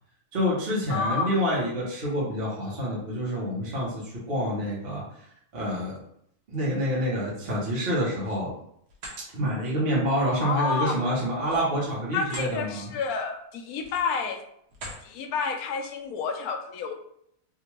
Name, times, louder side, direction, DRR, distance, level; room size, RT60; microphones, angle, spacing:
voice 1, 0.3-5.0 5.5-5.9 6.5-8.5 9.3-12.9, equal, 45° right, -6 dB, 1.1 m, -27 dB
voice 2, 0.9-1.3 10.4-10.9 12.1-14.4 15.0-16.9, left 5 dB, 80° left, 4 dB, 1.1 m, -29 dB
sound 1, 7.9-8.5 8.9-9.2 11.4-12.5 13.0-13.2 13.7-14.2 14.7-15.1, right 1 dB, 90° right, 1.4 m, -42 dB
3.6 x 2.5 x 3.0 m, 0.71 s
omnidirectional pair, 1.6 m